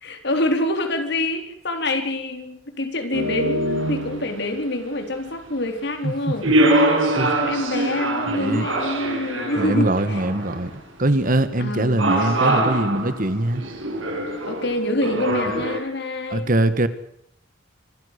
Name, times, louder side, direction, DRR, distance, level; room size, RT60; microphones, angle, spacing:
voice 1, 0.0-6.5 7.1-10.2 11.6-12.7 14.5-16.5, left 1 dB, 60° left, 6 dB, 4.1 m, -26 dB
sound 1, 3.1-4.5 6.4-10.7 12.0-15.8, right 1 dB, 85° right, 6.5 m, -23 dB
voice 2, 8.3-8.7 9.6-10.7 11.0-13.6 15.3-15.6 16.3-16.9, right 1 dB, 45° right, 12 dB, 1.6 m, -22 dB
26.0 x 14.5 x 8.3 m, 0.70 s
head